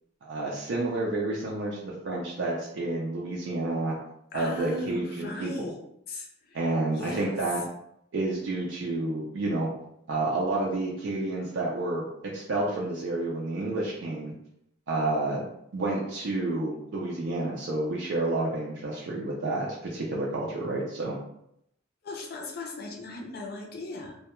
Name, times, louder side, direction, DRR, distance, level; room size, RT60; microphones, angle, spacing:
voice 1, 0.2-4.0 4.3-5.5 6.5-7.6 8.1-9.7 10.1-14.3 14.9-21.2, right 2 dB, 65° right, -4 dB, 0.4 m, -30 dB
voice 2, 4.3-5.8 6.1-7.3 22.0-24.2, left 1 dB, 50° left, 1 dB, 0.5 m, -38 dB
2.2 x 2.1 x 2.9 m, 0.77 s
head